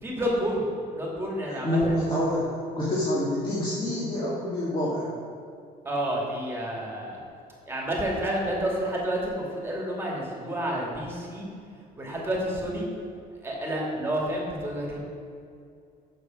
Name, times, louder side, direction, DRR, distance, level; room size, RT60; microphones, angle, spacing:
voice 1, 0.0-0.6 0.9-2.0 5.8-7.2 7.6-11.5 12.0-12.9 13.4-15.0, right 1 dB, 15° right, -3 dB, 2.4 m, -29 dB
voice 2, 1.6-5.1, left 1 dB, 30° left, -7 dB, 2.1 m, -27 dB
6.9 x 6.6 x 5.9 m, 2.4 s
cardioid pair, 110°, 17 cm